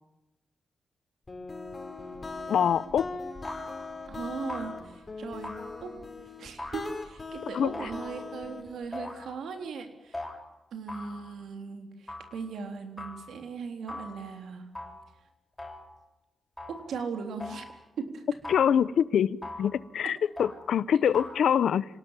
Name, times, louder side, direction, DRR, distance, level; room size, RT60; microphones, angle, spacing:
sound 1, 1.3-8.9, left 3 dB, 35° left, 4.7 m, -40 dB
voice 1, 2.5-3.1 7.5-7.7 18.5-21.8, left 8 dB, 85° left, 18 dB, 0.8 m, -25 dB
sound 2, 2.7-3.0 3.4-4.0 4.5-5.0 5.4-6.0 6.6-7.2 7.7-8.5 8.9-9.5 10.1-10.4 10.9-11.4 12.1-12.4 13.0-13.3 13.9-14.3 14.8-15.1 15.6-16.0 16.6-16.9 17.4-17.8 18.4-18.9 19.4-19.8 20.4-20.7 21.1-21.4, left 1 dB, 15° left, 7.5 m, -41 dB
voice 2, 4.1-5.5 5.8-5.9 6.4-10.3 10.7-14.7 16.7-17.7 18.0-18.2, right 5 dB, 90° right, 6 dB, 3.6 m, -38 dB
26.5 x 18.5 x 7.5 m, 0.97 s
cardioid pair, 75°, 0 cm